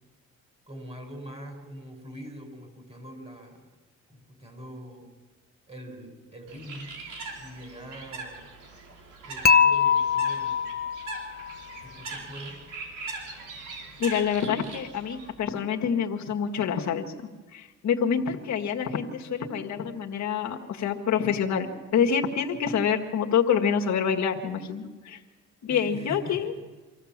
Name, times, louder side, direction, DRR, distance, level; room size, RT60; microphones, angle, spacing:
voice 1, 0.7-3.6 4.1-5.1 5.7-7.0 7.4-8.5 9.2-10.7 11.8-12.6 25.7-26.6, equal, 20° right, 4 dB, 5.2 m, -43 dB
Bird, 6.5-15.3, right 3 dB, 80° right, 4.3 m, -41 dB
Dishes pots and pans / Chink clink, 9.5-11.6, left 6 dB, 30° left, 0.8 m, -22 dB
voice 2, 14.0-17.1 17.5-25.2 25.6-26.5, left 7 dB, 65° left, 2 dB, 1.8 m, -27 dB
25.5 x 15.0 x 7.4 m, 1.3 s
cardioid pair, 90°, 30 cm